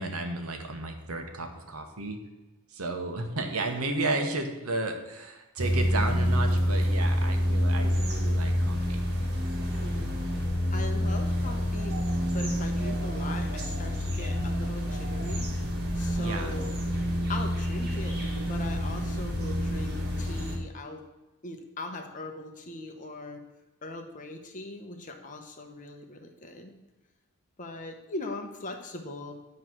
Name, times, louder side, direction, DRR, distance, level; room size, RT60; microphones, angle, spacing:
voice 1, 0.0-2.2 2.7-9.0 16.2-16.5, right 2 dB, 75° right, 5 dB, 1.1 m, -33 dB
sound 1, 5.6-20.6, equal, 45° right, 1.5 m, -28 dB
voice 2, 9.8-12.0 12.3-15.5 15.9-16.7 17.3-18.2 18.5-21.0 21.4-23.4 23.8-26.7 27.6-29.4, left 2 dB, 35° left, 4 dB, 0.9 m, -40 dB
9.5 x 3.2 x 6.0 m, 1.1 s
head